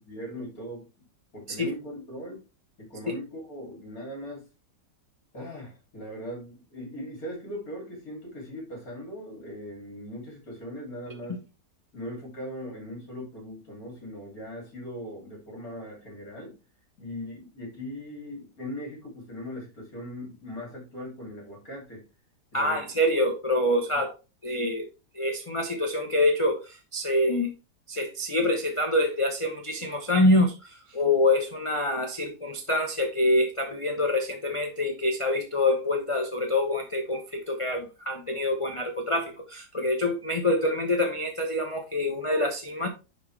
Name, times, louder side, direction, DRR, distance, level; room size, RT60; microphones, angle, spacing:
voice 1, 0.1-0.9 1.3-2.4 2.8-4.5 5.3-11.4 11.9-16.6 17.0-22.0 22.5-22.8 23.9-24.0, equal, 55° left, 3.4 m, -39 dB
voice 2, 22.5-24.1 24.4-24.8 25.1-27.5 27.9-42.9, left 1 dB, 35° left, 0.5 m, -26 dB
10.0 x 4.0 x 3.2 m
omnidirectional pair, 1.8 m